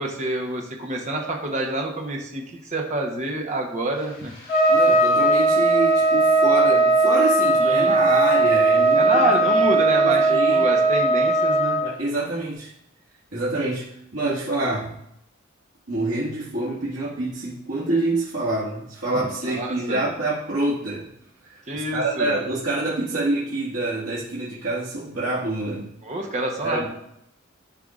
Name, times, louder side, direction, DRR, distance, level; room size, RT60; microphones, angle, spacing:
voice 1, 0.0-4.3 7.6-8.0 8.9-11.8 19.5-20.0 21.7-22.4 26.0-26.9, right 2 dB, 35° right, 1 dB, 1.0 m, -27 dB
Trumpet, 4.5-11.8, right 2 dB, 50° left, 2.2 m, -18 dB
voice 2, 4.7-9.3 10.0-10.7 11.8-12.7 13.3-13.9 14.1-15.0 15.9-21.1 21.4-25.9 26.6-26.9, right 2 dB, 80° right, -10 dB, 1.9 m, -26 dB
12.0 x 4.7 x 2.5 m, 0.78 s
head